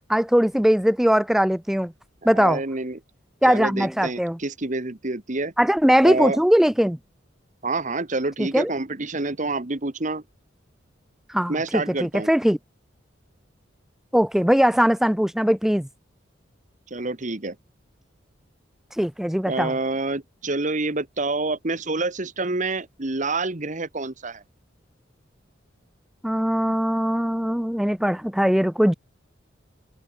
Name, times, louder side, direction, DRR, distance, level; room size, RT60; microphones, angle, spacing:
voice 1, 0.1-1.9 2.2-2.6 3.4-4.4 5.6-7.0 8.4-8.7 11.3-12.6 14.1-15.9 19.0-19.7 26.2-28.9, equal, ahead, 0.4 m, -20 dB
voice 2, 2.3-3.0 3.5-5.5 6.0-6.4 7.6-10.2 11.5-12.3 16.9-17.6 19.5-24.4, right 3 dB, 40° right, 1.4 m, -27 dB
head